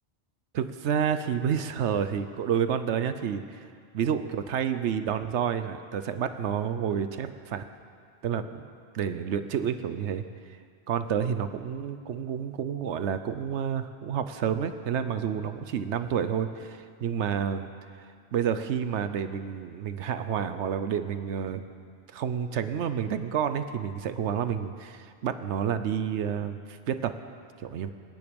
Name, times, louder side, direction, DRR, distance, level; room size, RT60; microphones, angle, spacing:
voice 1, 0.5-3.6 3.9-7.6 8.2-8.7 8.9-10.2 10.9-17.7 18.0-21.6 22.1-27.1 27.6-27.9, right 8 dB, 80° right, 10 dB, 1.0 m, -29 dB
26.0 x 10.0 x 5.2 m, 2.2 s
omnidirectional pair, 1.2 m